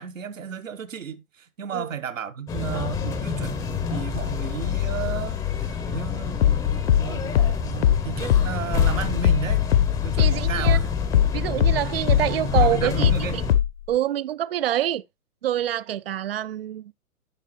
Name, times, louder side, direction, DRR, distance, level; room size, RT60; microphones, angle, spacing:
voice 1, 0.0-6.4 6.8-9.6 10.0-10.9 12.6-13.4, right 7 dB, 65° right, 1.3 m, -33 dB
sound 1, 2.5-13.5, left 6 dB, 5° left, 0.7 m, -28 dB
sound 2, 6.4-11.4 11.6-13.9, left 10 dB, 45° left, 0.8 m, -20 dB
voice 2, 10.2-10.8 11.3-13.4 13.9-15.0 15.4-16.9, right 12 dB, 45° right, 0.4 m, -26 dB
10.5 x 6.5 x 3.1 m
figure-of-eight pair, 120°, 43 cm